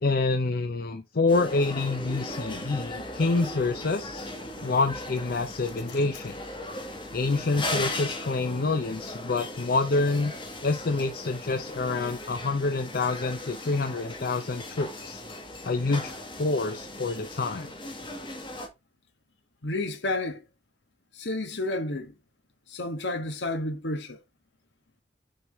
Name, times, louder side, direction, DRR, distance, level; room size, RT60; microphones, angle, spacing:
voice 1, 0.0-4.3 4.6-6.4 7.1-10.3 10.6-15.2 15.6-16.1 16.4-17.7, left 3 dB, 55° left, 0.6 m, -27 dB
sound 1, 1.3-18.7, left 1 dB, 30° left, 1.6 m, -38 dB
voice 2, 19.6-20.4 21.1-22.1 22.7-24.2, left 2 dB, 75° left, 1.3 m, -31 dB
6.5 x 4.7 x 3.4 m
head